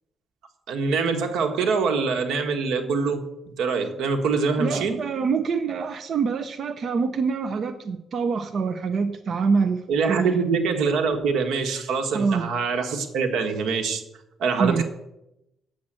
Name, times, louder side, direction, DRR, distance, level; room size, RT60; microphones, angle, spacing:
voice 1, 0.7-3.2 3.6-5.0 9.9-14.0 14.4-14.8, right 5 dB, 80° right, 5 dB, 1.5 m, -24 dB
voice 2, 4.6-10.4 12.1-12.5 14.6-14.8, right 5 dB, 45° right, 7 dB, 0.6 m, -25 dB
8.5 x 7.7 x 7.5 m, 0.87 s
cardioid pair, 150°, 0 cm